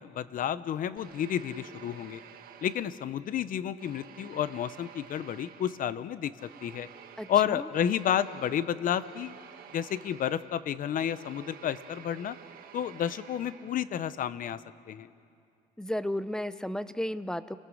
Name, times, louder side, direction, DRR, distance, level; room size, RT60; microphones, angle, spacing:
voice 1, 0.0-2.2 2.6-6.9 7.3-9.3 9.7-12.4 12.7-15.1, left 9 dB, 55° left, 15 dB, 0.9 m, -31 dB
sound 1, 1.0-3.4 3.8-14.1, right 9 dB, 60° right, 1.6 m, -51 dB
voice 2, 7.2-7.7 15.8-17.6, left 1 dB, 5° left, 14 dB, 0.7 m, -33 dB
29.5 x 20.5 x 6.4 m, 2.4 s
cardioid pair, 110°, 17 cm